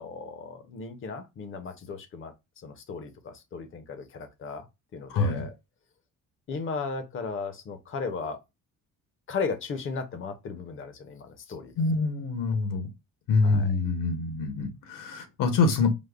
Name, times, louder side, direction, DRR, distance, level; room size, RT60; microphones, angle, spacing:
voice 1, 0.0-4.6 4.9-5.5 6.5-8.4 9.3-11.7 13.4-13.7, left 4 dB, 40° left, 0.6 m, -36 dB
voice 2, 5.1-5.5 11.8-12.9 13.3-15.9, left 3 dB, 70° left, 0.9 m, -25 dB
5.0 x 2.0 x 2.3 m
cardioid pair, 180°, 34 cm